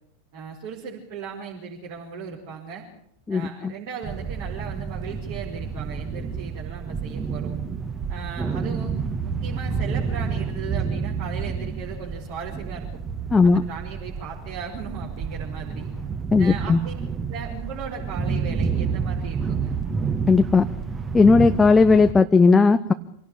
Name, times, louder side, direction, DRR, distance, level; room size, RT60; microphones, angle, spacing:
voice 1, 0.3-2.9 3.3-7.6 8.1-8.9 9.2-13.0 13.4-15.9 16.4-16.9 17.3-19.8, right 6 dB, 45° right, -2 dB, 5.1 m, -37 dB
sound 1, 4.0-22.1, right 5 dB, 20° right, 2.2 m, -29 dB
voice 2, 13.3-13.6 16.3-16.8 20.3-20.7 21.1-22.9, left 4 dB, 15° left, 9 dB, 0.9 m, -16 dB
26.0 x 17.5 x 8.8 m, 0.68 s
figure-of-eight pair, 90°, 0 cm